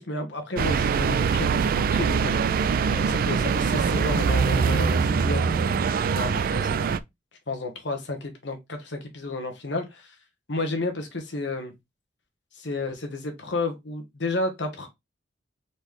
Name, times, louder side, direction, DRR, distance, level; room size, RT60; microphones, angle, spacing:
voice 1, 0.0-2.3 2.9-7.0 7.5-10.1 10.5-11.7 12.5-14.9, left 2 dB, 65° left, 1.1 m, -32 dB
sound 1, 0.6-7.0, right 6 dB, 50° right, 0.3 m, -23 dB
4.0 x 3.2 x 3.5 m
head